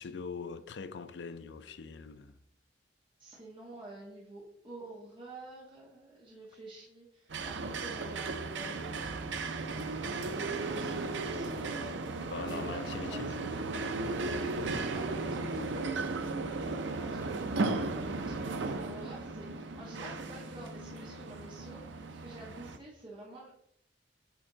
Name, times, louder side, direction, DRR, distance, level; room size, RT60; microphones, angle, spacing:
voice 1, 0.0-2.4 12.3-13.3, left 5 dB, 70° left, 0.5 m, -42 dB
voice 2, 3.2-13.5 14.2-16.0 16.9-23.5, right 1 dB, 30° right, 1.3 m, -49 dB
sound 1, 7.3-22.8, right 3 dB, 85° right, 0.6 m, -36 dB
8.4 x 3.5 x 3.9 m
head